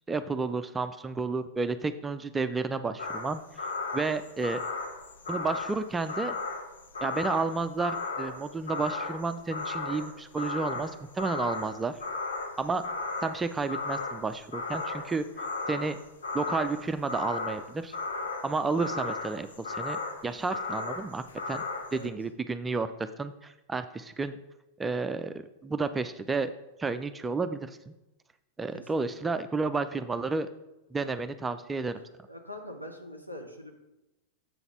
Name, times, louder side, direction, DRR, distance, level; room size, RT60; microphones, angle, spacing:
voice 1, 0.1-3.6 3.9-4.6 5.3-6.4 7.0-12.0 12.6-12.8 13.2-16.0 16.3-18.0 18.4-21.6 21.9-24.4 24.8-25.3 25.6-26.5 26.8-27.9 28.6-30.5 30.9-31.9, right 4 dB, 15° right, 10 dB, 0.4 m, -31 dB
sound 1, 3.0-22.1, left 3 dB, 70° left, 0.7 m, -36 dB
voice 2, 28.7-29.0 32.3-33.7, left 1 dB, 90° left, 2 dB, 1.0 m, -43 dB
7.4 x 4.0 x 5.7 m, 0.97 s
figure-of-eight pair, 90°, 0 cm